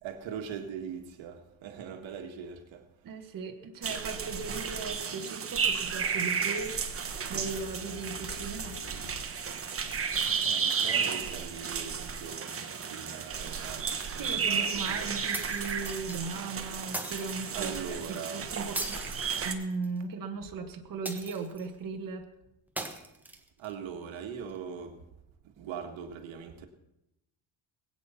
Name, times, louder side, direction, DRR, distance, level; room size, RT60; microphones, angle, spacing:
voice 1, 0.0-2.9 10.4-12.5 12.8-15.1 17.5-18.5 23.6-25.1 25.4-26.7, right 7 dB, 90° right, 1.9 m, -41 dB
voice 2, 3.0-6.8 7.3-8.8 14.2-19.0 19.4-22.3, right 4 dB, 45° right, 1.6 m, -37 dB
sound 1, 3.8-19.5, right 6 dB, 30° right, 1.3 m, -33 dB
sound 2, 7.4-9.7, left 5 dB, 85° left, 3.3 m, -48 dB
sound 3, 15.3-16.2 16.9-17.5 18.7-20.0 21.0-21.7 22.8-23.7, right 1 dB, 5° right, 1.5 m, -39 dB
21.0 x 8.9 x 5.8 m
cardioid pair, 140°, 45 cm